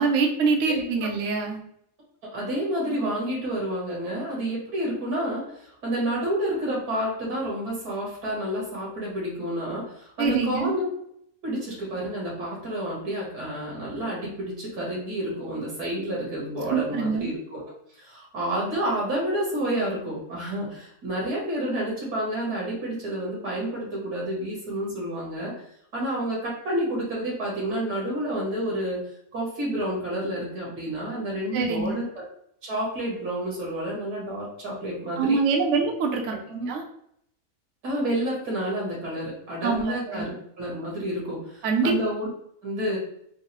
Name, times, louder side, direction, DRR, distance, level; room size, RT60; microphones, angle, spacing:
voice 1, 0.0-1.6 10.2-10.7 16.7-17.3 31.5-32.0 35.2-36.3 36.7-36.8 39.6-40.2 41.6-41.9, right 4 dB, 65° right, 2 dB, 0.8 m, -24 dB
voice 2, 2.3-10.9 11.4-25.5 25.9-29.0 29.3-32.0 32.6-35.4 36.5-36.7 37.8-42.3 42.6-43.0, right 1 dB, 90° right, -5 dB, 2.1 m, -29 dB
4.6 x 2.0 x 2.9 m, 0.70 s
omnidirectional pair, 1.6 m